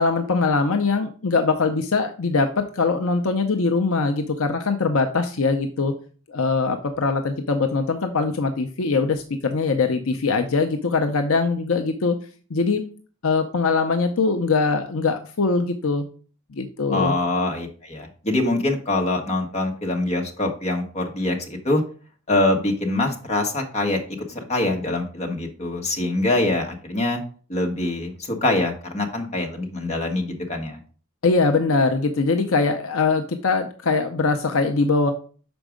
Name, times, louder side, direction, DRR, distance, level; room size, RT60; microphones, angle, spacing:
voice 1, 0.0-5.9 6.3-12.2 12.5-12.8 13.2-16.0 16.5-17.1 31.2-35.1, left 4 dB, 65° left, 6 dB, 0.6 m, -22 dB
voice 2, 16.9-21.8 22.3-24.0 24.3-27.2 27.5-30.8, left 2 dB, 30° left, 2 dB, 1.3 m, -24 dB
6.1 x 4.5 x 5.0 m, 0.40 s
head